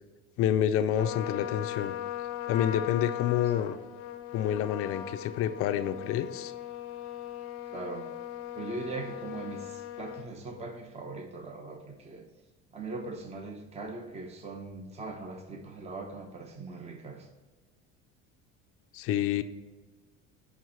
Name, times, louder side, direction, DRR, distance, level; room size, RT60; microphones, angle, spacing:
voice 1, 0.4-1.9 2.5-3.8 4.3-6.5 18.9-19.4, left 10 dB, 50° left, 8 dB, 0.5 m, -28 dB
Trumpet, 0.9-10.3, left 12 dB, 90° left, 0.7 m, -39 dB
voice 2, 7.6-8.1 8.6-12.2 12.7-17.3, right 3 dB, 20° right, 3 dB, 0.8 m, -40 dB
5.7 x 4.7 x 5.7 m, 1.3 s
cardioid pair, 130°, 30 cm